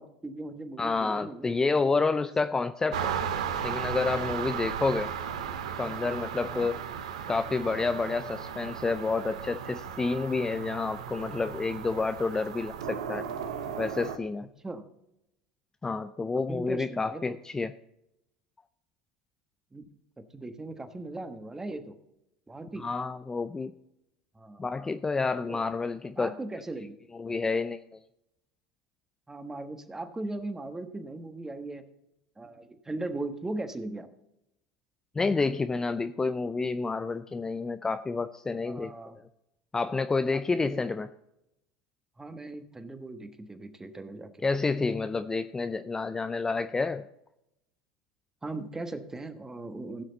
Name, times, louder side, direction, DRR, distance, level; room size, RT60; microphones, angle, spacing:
voice 1, 0.0-1.5 6.4-6.7 14.6-14.9 16.5-17.4 19.7-19.8 20.2-22.0 22.5-22.8 24.3-24.6 25.5-25.6 26.2-27.0 29.3-31.8 32.4-34.1 38.6-39.2 40.3-40.8 42.2-44.3 48.4-50.0, right 2 dB, 15° right, 9 dB, 1.3 m, -38 dB
voice 2, 0.8-3.2 3.6-5.1 5.8-6.8 7.3-13.3 13.8-14.5 15.8-17.7 22.8-23.7 24.6-26.3 27.1-28.0 35.2-39.1 39.7-41.1 44.4-47.0, left 4 dB, 15° left, 10 dB, 0.5 m, -29 dB
sound 1, 2.9-14.2, right 8 dB, 80° right, 0.9 m, -35 dB
16.5 x 6.5 x 4.0 m, 0.84 s
hypercardioid pair, 80°, 3 cm